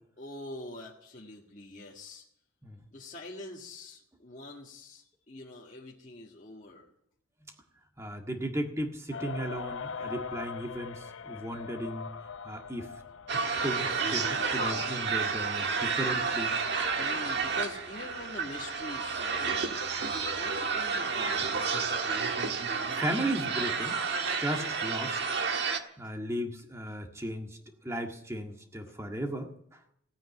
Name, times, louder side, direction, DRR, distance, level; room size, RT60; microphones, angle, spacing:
voice 1, 0.2-2.2 2.9-6.9 15.2-15.3 17.0-19.7 20.0-21.6 26.0-26.1 26.9-27.0 28.9-29.0, left 2 dB, 35° left, -4 dB, 1.8 m, -44 dB
voice 2, 8.0-12.1 12.4-12.9 13.5-16.5 16.8-16.9 23.0-24.0 24.4-25.2 26.0-27.6 27.8-29.8, right 1 dB, 15° right, 3 dB, 1.7 m, -35 dB
sound 1, 9.1-20.7, left 6 dB, 70° left, 0.6 m, -44 dB
sound 2, 13.3-25.8, right 5 dB, 55° right, 1.5 m, -31 dB
sound 3, 13.9-19.2, right 4 dB, 40° right, 4.5 m, -55 dB
16.5 x 9.2 x 9.0 m, 0.72 s
head